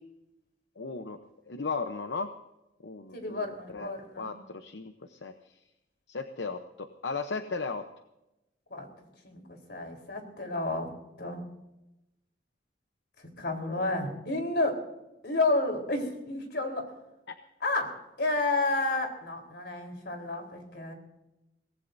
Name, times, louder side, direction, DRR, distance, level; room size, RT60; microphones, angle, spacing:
voice 1, 0.8-1.2 1.5-2.3 2.8-5.3 6.1-7.8 17.3-17.4, left 4 dB, 85° left, 7 dB, 0.9 m, -36 dB
voice 2, 3.1-4.3 8.7-8.9 9.2-9.4 9.7-10.9 11.2-11.4 13.4-14.8 15.2-16.8 17.6-20.9, left 2 dB, 65° left, 4 dB, 4.0 m, -30 dB
24.5 x 18.0 x 2.7 m, 0.91 s
head